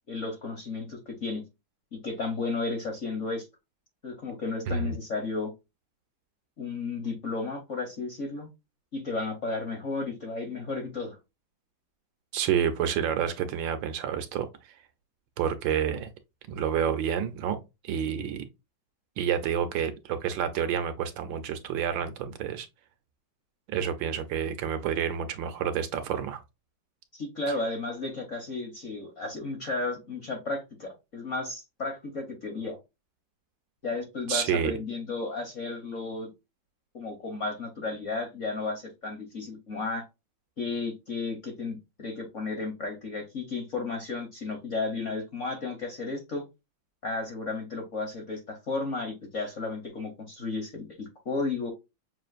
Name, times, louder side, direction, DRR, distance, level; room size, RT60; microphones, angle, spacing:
voice 1, 0.1-1.4 1.9-3.5 4.0-5.5 6.6-8.5 8.9-11.2 27.1-32.8 33.8-36.3 36.9-40.0 40.6-46.4 47.0-51.7, left 3 dB, 55° left, 0.9 m, -33 dB
voice 2, 12.3-14.7 15.4-16.1 16.5-17.6 17.8-18.4 19.2-22.7 23.7-26.4 34.3-34.7, right 8 dB, 75° right, 1.2 m, -29 dB
6.1 x 2.5 x 2.4 m
omnidirectional pair, 2.3 m